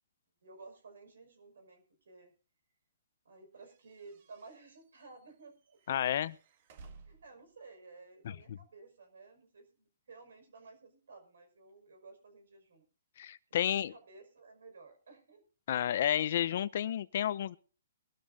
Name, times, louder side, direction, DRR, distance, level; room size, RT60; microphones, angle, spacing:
voice 1, 0.4-2.3 3.2-5.8 7.0-12.8 13.5-15.4, right 3 dB, 80° right, 7 dB, 5.5 m, -55 dB
sound 1, 3.6-7.4, right 4 dB, 50° right, 1.9 m, -58 dB
voice 2, 5.9-6.4 8.2-8.6 13.2-13.9 15.7-17.6, left 10 dB, 55° left, 17 dB, 0.7 m, -31 dB
23.0 x 13.0 x 2.7 m, 0.38 s
hypercardioid pair, 145°, 0 cm